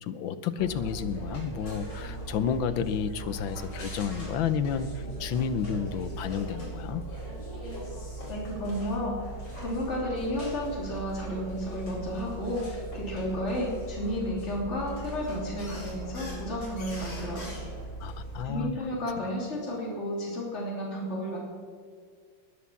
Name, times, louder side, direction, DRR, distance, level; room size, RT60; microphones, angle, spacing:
voice 1, 0.0-7.0 18.0-18.7, left 7 dB, 85° left, 12 dB, 1.6 m, -31 dB
sound 1, 0.6-18.5, right 2 dB, 65° left, 5.4 m, -39 dB
voice 2, 8.3-9.3 9.6-17.5 18.4-21.4, equal, 35° left, -4 dB, 3.5 m, -32 dB
20.5 x 9.6 x 7.2 m, 2.1 s
omnidirectional pair, 2.1 m